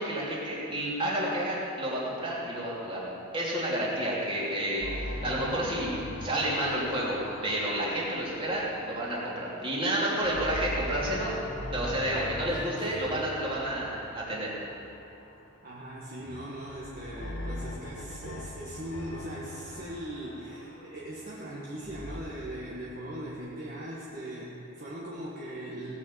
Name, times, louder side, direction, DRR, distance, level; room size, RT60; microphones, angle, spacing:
voice 1, 0.0-3.0 3.3-7.1 7.4-11.3 11.7-14.5, right 1 dB, 25° right, -6 dB, 3.0 m, -30 dB
sound 1, 4.8-9.8 10.1-15.4 16.2-22.2, left 1 dB, 70° left, 1.1 m, -41 dB
voice 2, 15.6-25.9, right 1 dB, 45° right, -6 dB, 1.6 m, -40 dB
17.0 x 6.2 x 7.5 m, 2.7 s
head